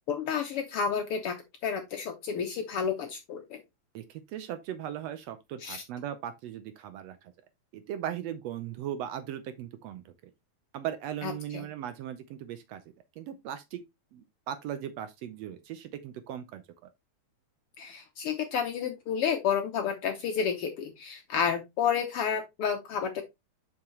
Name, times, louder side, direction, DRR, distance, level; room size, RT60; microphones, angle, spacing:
voice 1, 0.1-1.3 1.6-3.6 5.6-5.8 11.2-11.7 17.8-23.2, left 7 dB, 70° left, 1.4 m, -30 dB
voice 2, 3.9-7.3 7.7-10.1 10.7-12.8 13.2-13.8 14.1-16.9, right 10 dB, 75° right, 1.7 m, -38 dB
7.1 x 5.5 x 3.1 m
omnidirectional pair, 3.3 m